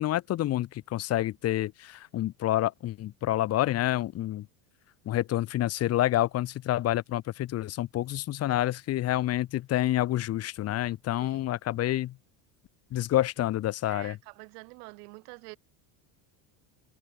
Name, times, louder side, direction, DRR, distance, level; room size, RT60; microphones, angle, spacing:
voice 1, 0.0-4.5 5.1-12.1 12.9-14.2, left 14 dB, 35° left, 0.6 m, -28 dB
voice 2, 13.9-15.6, right 30 dB, 80° right, 3.0 m, -47 dB
open air
supercardioid pair, 115°, 47 cm